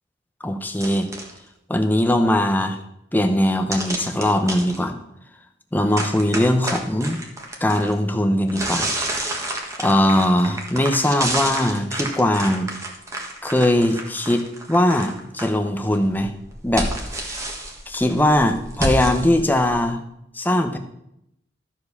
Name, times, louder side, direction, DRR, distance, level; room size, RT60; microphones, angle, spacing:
voice 1, 0.4-1.1 1.7-2.8 3.1-5.0 5.7-7.2 7.6-8.9 9.2-9.4 9.8-12.7 13.4-16.3 16.6-17.4 17.9-20.0 20.3-20.8, left 1 dB, 10° left, 6 dB, 0.8 m, -20 dB
sound 1, 0.7-1.4 3.7-4.8 5.9-7.9 8.5-15.5 15.8-19.8, right 1 dB, 15° right, 1.5 m, -29 dB
13.0 x 4.9 x 6.6 m, 0.81 s
head